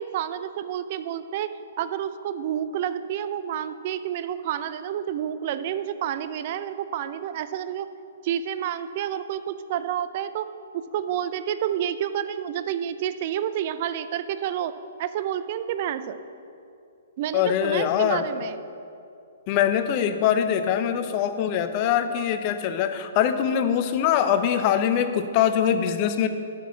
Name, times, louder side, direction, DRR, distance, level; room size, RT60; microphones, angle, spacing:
voice 1, 0.0-1.5 1.8-7.9 8.2-10.5 10.9-14.7 15.0-16.2 17.2-18.6, right 10 dB, 45° right, 12 dB, 0.4 m, -29 dB
voice 2, 17.3-18.2 19.5-26.3, left 9 dB, 40° left, 9 dB, 0.6 m, -23 dB
6.2 x 6.0 x 7.1 m, 2.5 s
figure-of-eight pair, 120°, 0 cm